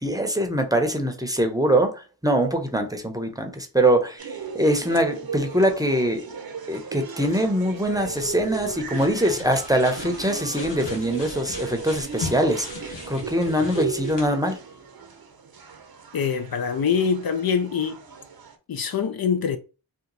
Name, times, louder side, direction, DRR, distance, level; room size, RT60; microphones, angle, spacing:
voice 1, 0.0-4.3 4.5-6.2 6.7-14.6, right 1 dB, 10° right, 0.7 m, -23 dB
sound 1, 4.2-18.6, right 6 dB, 55° right, 0.7 m, -37 dB
sound 2, 7.8-14.3, left 3 dB, 80° left, 0.9 m, -39 dB
voice 2, 16.1-18.0 18.7-19.6, left 6 dB, 60° left, 0.5 m, -24 dB
2.8 x 2.3 x 3.9 m
cardioid pair, 45°, 43 cm